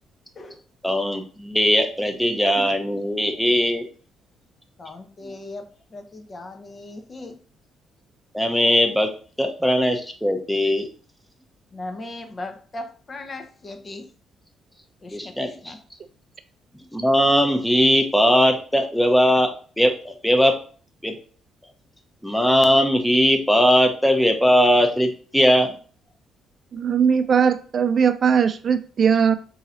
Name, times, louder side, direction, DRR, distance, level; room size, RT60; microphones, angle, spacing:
voice 1, 0.8-3.9 5.2-5.3 8.3-9.1 9.4-10.9 15.1-15.7 16.9-19.5 19.8-20.5 21.0-21.2 22.2-25.8, equal, 5° left, 4 dB, 0.8 m, -19 dB
voice 2, 4.8-5.7 5.9-7.3 11.7-14.0 15.0-15.8, left 2 dB, 35° left, 6 dB, 0.8 m, -37 dB
voice 3, 26.7-29.4, right 7 dB, 50° right, 11 dB, 0.5 m, -19 dB
3.8 x 2.8 x 4.2 m, 0.42 s
cardioid pair, 90°, 0 cm